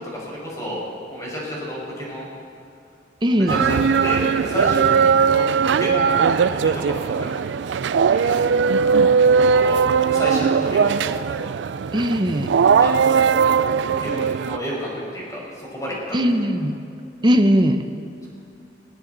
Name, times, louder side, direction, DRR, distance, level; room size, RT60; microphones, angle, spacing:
voice 1, 0.1-0.8 1.1-2.3 3.4-7.3 8.1-8.3 8.9-9.8 10.1-11.2 12.8-13.3 13.9-16.2 18.2-18.3, equal, 20° left, -5 dB, 5.4 m, -30 dB
voice 2, 3.2-3.6 11.9-12.5 16.1-16.8 17.2-17.8, equal, 25° right, 7 dB, 0.8 m, -19 dB
sound 1, 3.5-14.6, right 6 dB, 80° right, 0.4 m, -19 dB
20.5 x 17.0 x 4.0 m, 2.4 s
head